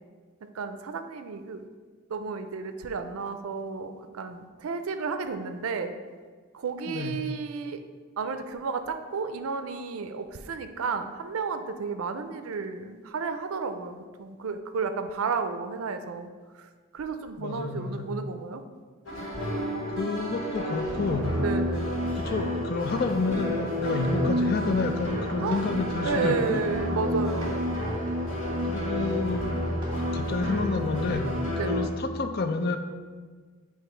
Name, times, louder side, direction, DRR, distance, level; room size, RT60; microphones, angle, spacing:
voice 1, 0.5-1.6 2.1-5.9 6.5-7.8 8.2-16.3 16.6-18.6 19.5-19.6 20.0-20.2 21.4-21.9 25.4-25.6 26.0-27.6 31.5-31.8, right 5 dB, 80° right, 9 dB, 0.4 m, -32 dB
voice 2, 6.9-7.2 17.4-18.1 19.9-21.3 22.1-26.6 28.6-29.5 30.0-31.3 31.6-32.8, left 3 dB, 50° left, 7 dB, 0.4 m, -29 dB
sound 1, 19.1-31.9, equal, 90° left, 1.7 m, -30 dB
sound 2, 20.5-30.0, right 1 dB, 25° right, 1.5 m, -41 dB
7.9 x 2.8 x 4.4 m, 1.5 s
head